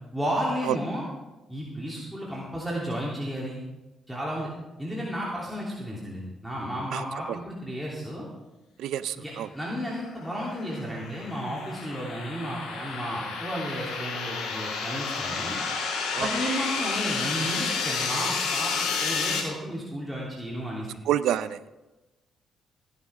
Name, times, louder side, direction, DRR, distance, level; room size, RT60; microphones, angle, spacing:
voice 1, 0.1-1.0 1.5-3.6 4.1-4.5 4.8-8.3 9.1-15.6 16.2-18.7 19.0-20.9, equal, 5° right, -5 dB, 3.1 m, -33 dB
voice 2, 8.8-9.5 16.1-16.3 21.1-21.7, right 11 dB, 80° right, 14 dB, 0.4 m, -27 dB
sound 1, 10.4-19.4, left 5 dB, 80° left, 4.5 m, -30 dB
16.0 x 11.0 x 3.6 m, 1.0 s
cardioid pair, 75°, 0 cm